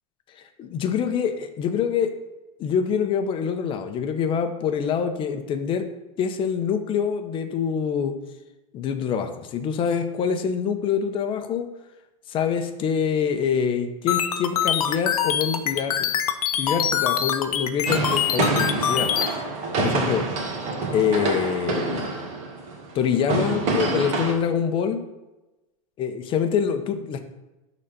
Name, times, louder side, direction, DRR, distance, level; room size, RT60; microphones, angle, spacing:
voice 1, 0.6-2.1 2.6-5.9 6.2-8.1 8.7-11.7 12.3-16.2 16.5-19.1 19.8-20.2 20.9-22.1 22.9-25.0 26.0-27.2, left 7 dB, 30° left, 7 dB, 0.9 m, -25 dB
sound 1, 14.1-19.3, left 9 dB, 90° left, 1.0 m, -24 dB
sound 2, 17.9-24.3, right 3 dB, 40° right, 1.9 m, -26 dB
11.5 x 4.2 x 6.8 m, 1.0 s
supercardioid pair, 145°, 18 cm